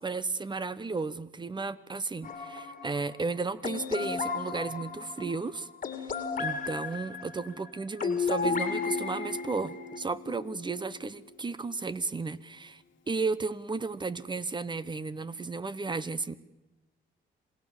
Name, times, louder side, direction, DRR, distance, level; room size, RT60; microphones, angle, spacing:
voice 1, 0.0-5.7 6.1-16.4, right 4 dB, 25° right, 1.1 m, -34 dB
sound 1, 2.2-10.0, left 4 dB, 40° left, 2.1 m, -34 dB
Guitar, 8.4-12.1, left 5 dB, 70° left, 1.2 m, -41 dB
27.0 x 17.5 x 7.3 m
cardioid pair, 90°, 20 cm